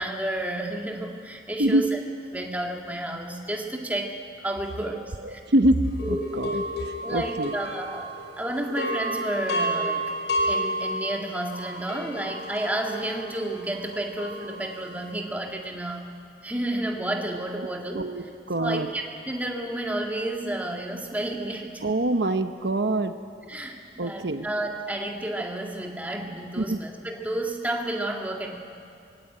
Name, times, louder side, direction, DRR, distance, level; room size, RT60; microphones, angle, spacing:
voice 1, 0.0-2.0 2.3-5.4 6.0-6.3 7.0-10.1 10.5-16.1 16.4-18.1 18.6-21.8 23.5-28.6, right 1 dB, 10° right, 0 dB, 2.0 m, -31 dB
voice 2, 5.2-5.8 6.1-7.5 17.9-18.9 21.8-23.1 24.0-24.5 26.6-26.8, right 1 dB, 75° right, 8 dB, 0.9 m, -25 dB
sound 1, 6.0-8.3 8.6-15.0, right 1 dB, 85° left, 5.3 m, -31 dB
24.0 x 19.5 x 8.9 m, 2.4 s
head